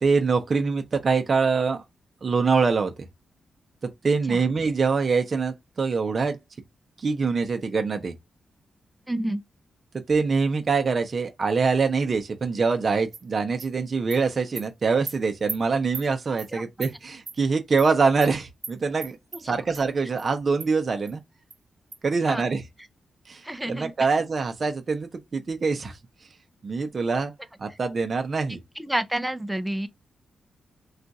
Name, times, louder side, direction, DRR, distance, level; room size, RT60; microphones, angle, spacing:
voice 1, 0.0-1.8 2.2-2.9 4.0-6.4 7.0-8.2 10.1-21.2 22.0-22.6 23.3-26.0 26.6-27.3 27.6-28.6, right 4 dB, 45° right, 0.6 m, -24 dB
voice 2, 9.1-9.4 16.5-16.6 22.2-22.4 23.4-23.9 28.8-29.9, right 1 dB, 5° right, 0.4 m, -29 dB
Animal, 13.1-13.2 13.6-13.7 14.1-14.2 14.6-14.7 15.1-15.2 15.5-15.6 15.9-16.1 16.4-16.5 16.8-16.9 17.3-17.4 17.8-17.9 18.2-18.3 18.6-18.7 19.0-19.4 19.7-19.8 20.2-20.3 20.6-20.7 21.1-21.2 21.5-21.6 21.9-22.0, right 5 dB, 65° right, 1.1 m, -36 dB
2.4 x 2.3 x 4.0 m
cardioid pair, 90°, 0 cm